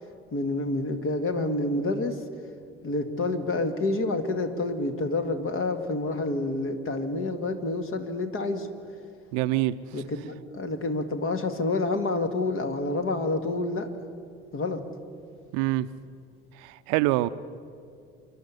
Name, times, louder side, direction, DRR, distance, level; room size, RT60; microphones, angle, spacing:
voice 1, 0.3-2.2 2.8-8.7 9.9-13.9 14.5-14.8, left 2 dB, 40° left, 2.0 m, -28 dB
voice 2, 9.3-9.7 15.5-15.9 16.6-17.3, right 17 dB, 55° right, 0.6 m, -25 dB
27.0 x 11.5 x 9.7 m
figure-of-eight pair, 55°, 31 cm